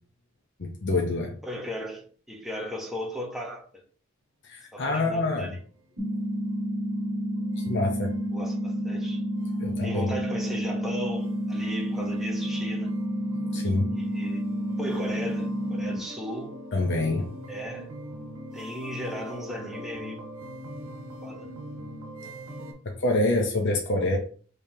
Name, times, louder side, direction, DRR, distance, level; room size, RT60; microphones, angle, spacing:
voice 1, 0.6-1.3 4.4-5.5 7.6-8.1 9.6-10.1 13.5-13.9 16.7-17.3 23.0-24.2, left 2 dB, 55° left, 0.8 m, -26 dB
voice 2, 1.4-3.8 4.7-5.6 8.3-9.2 9.8-12.9 13.9-14.4 14.8-16.6 17.5-17.9 18.5-20.3 21.2-21.5, equal, ahead, 0.9 m, -36 dB
sound 1, 5.8-22.7, equal, 85° right, 1.4 m, -44 dB
sound 2, 6.0-16.0, equal, 55° right, 1.9 m, -30 dB
5.2 x 3.4 x 2.8 m
head